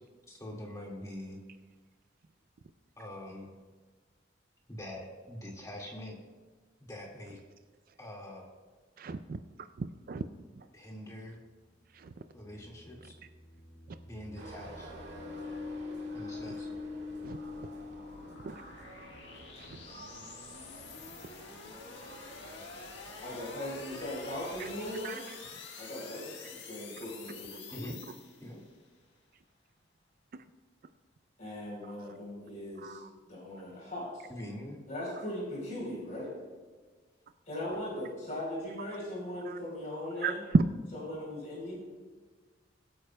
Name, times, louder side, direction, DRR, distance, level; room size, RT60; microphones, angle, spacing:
voice 1, 0.3-1.4 3.0-3.5 4.7-6.1 6.8-7.4 8.0-8.5 10.7-11.4 12.3-13.1 14.0-14.9 16.1-16.7 27.7-28.0 28.4-28.6 34.3-34.8, left 1 dB, 20° left, -1 dB, 1.9 m, -44 dB
voice 2, 9.0-9.4 9.8-10.2 12.0-12.1 17.2-17.4 18.4-18.5 25.0-25.2 32.8-33.1 39.5-39.6 40.2-40.6, right 4 dB, 50° right, 10 dB, 0.4 m, -31 dB
sound 1, 10.4-10.5 12.0-18.8, left 4 dB, 90° left, 2.1 m, -44 dB
sound 2, 14.4-24.9, right 2 dB, 70° right, 1.9 m, -51 dB
sound 3, 14.6-28.8, left 4 dB, 70° left, 1.5 m, -49 dB
voice 3, 23.2-25.2 25.8-27.9 31.4-33.0 33.3-34.3 34.9-36.3 37.5-40.4 40.9-41.8, left 1 dB, 45° left, -4 dB, 3.8 m, -39 dB
21.5 x 8.7 x 2.2 m, 1.4 s
head